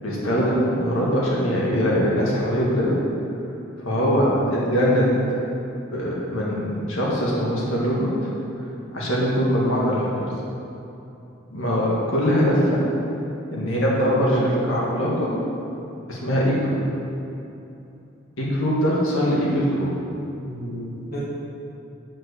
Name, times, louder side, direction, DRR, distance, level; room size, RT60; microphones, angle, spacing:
voice 1, 0.0-2.9 3.8-5.2 5.9-8.3 8.9-10.3 11.5-12.8 13.5-15.3 16.1-16.8 18.4-19.9, equal, 75° left, -5 dB, 1.9 m, -22 dB
voice 2, 13.6-14.8 20.4-21.2, equal, 45° left, -7 dB, 1.5 m, -28 dB
7.4 x 5.3 x 6.8 m, 2.9 s
head